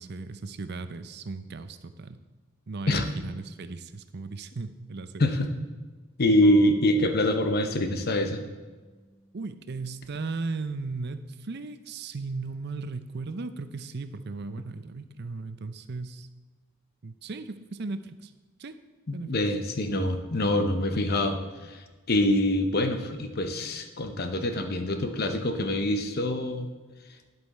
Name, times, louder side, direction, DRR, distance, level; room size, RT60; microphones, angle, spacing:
voice 1, 0.0-2.2 2.7-5.1 9.3-16.3 17.0-18.3 18.6-18.8 19.1-19.3, right 3 dB, 50° right, 11 dB, 0.6 m, -36 dB
voice 2, 6.2-8.4 19.1-21.8 22.1-26.7, left 1 dB, 45° left, 7 dB, 0.9 m, -25 dB
sound 1, 6.4-9.7, left 1 dB, 15° left, 0.9 m, -46 dB
10.5 x 7.9 x 4.2 m, 1.4 s
head